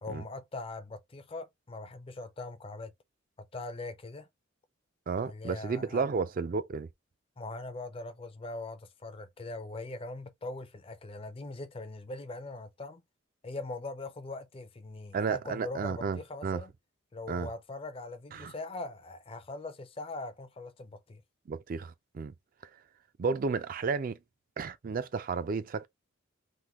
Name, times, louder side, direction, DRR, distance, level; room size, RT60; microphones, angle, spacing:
voice 1, 0.0-2.9 3.5-4.3 5.2-6.1 7.4-13.0 13.4-16.7 17.1-21.2, left 2 dB, 25° left, 0.4 m, -41 dB
voice 2, 5.1-6.9 15.1-16.6 17.3-17.5 18.3-18.5 21.5-22.3 23.2-24.2 24.6-25.9, right 5 dB, 40° right, 0.3 m, -32 dB
3.6 x 2.1 x 2.9 m
head